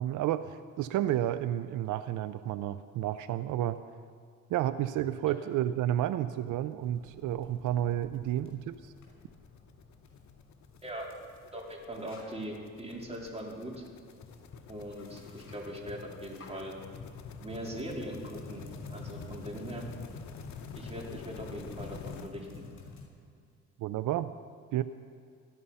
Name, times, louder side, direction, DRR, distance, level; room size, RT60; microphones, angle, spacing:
voice 1, 0.0-3.8 4.5-8.9 23.8-24.3 24.7-24.8, right 12 dB, 85° right, 13 dB, 0.6 m, -31 dB
sound 1, 6.8-6.9 7.3-7.4 7.7-22.3, left 9 dB, 65° left, 1.0 m, -52 dB
sound 2, 6.8-23.1, left 4 dB, 45° left, 5.4 m, -48 dB
voice 2, 11.5-13.8 14.7-16.7 17.4-19.9 20.8-22.6, equal, 20° right, -1 dB, 3.8 m, -40 dB
19.0 x 12.5 x 5.6 m, 2.2 s
cardioid pair, 90°, 30 cm